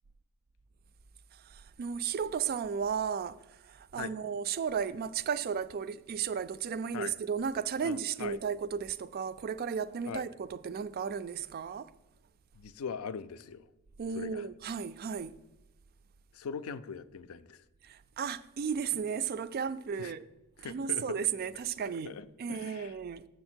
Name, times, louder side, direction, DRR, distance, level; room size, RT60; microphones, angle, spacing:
voice 1, 1.3-11.9 14.0-15.4 17.8-20.3 20.6-23.3, right 7 dB, 45° right, 0.3 m, -34 dB
voice 2, 7.8-8.4 10.1-10.3 12.5-13.7 14.1-14.4 16.3-17.6 20.0-20.1 20.6-21.2 22.1-22.9, left 6 dB, 85° left, 0.4 m, -41 dB
7.3 x 6.6 x 4.4 m
head